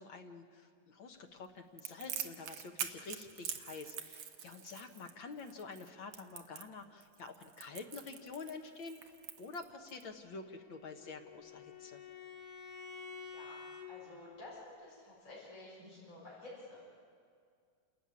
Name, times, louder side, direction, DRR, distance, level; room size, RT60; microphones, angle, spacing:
voice 1, 0.0-9.0 9.4-12.0, left 4 dB, 55° left, 4 dB, 1.4 m, -48 dB
Crackle, 1.8-10.0, right 9 dB, 65° right, 2.1 m, -44 dB
Bowed string instrument, 10.4-13.9, left 5 dB, 80° left, 4.0 m, -50 dB
voice 2, 13.3-16.8, left 2 dB, 20° left, -8 dB, 7.0 m, -51 dB
28.5 x 14.0 x 9.7 m, 2.2 s
omnidirectional pair, 3.8 m